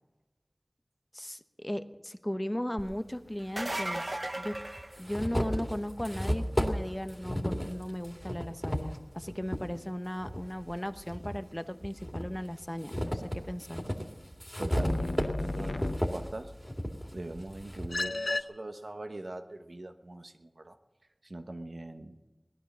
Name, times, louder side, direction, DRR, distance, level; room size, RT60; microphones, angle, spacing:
voice 1, 1.1-4.6 5.0-13.8, equal, 15° left, 10 dB, 0.9 m, -37 dB
sound 1, 2.8-2.9 3.9-4.0 4.5-9.7 10.2-11.4 11.8-18.0, equal, ahead, 2.2 m, -34 dB
sound 2, 3.4-5.6 11.1-11.2 13.1-13.2, right 1 dB, 40° right, 0.8 m, -36 dB
voice 2, 14.6-16.5 17.1-20.8 21.2-22.2, right 2 dB, 80° right, 7 dB, 1.1 m, -41 dB
sound 3, 14.7-16.5 17.9-18.4, left 2 dB, 90° left, 0.5 m, -34 dB
19.0 x 12.0 x 6.2 m, 1.1 s
wide cardioid pair, 50°, 0 cm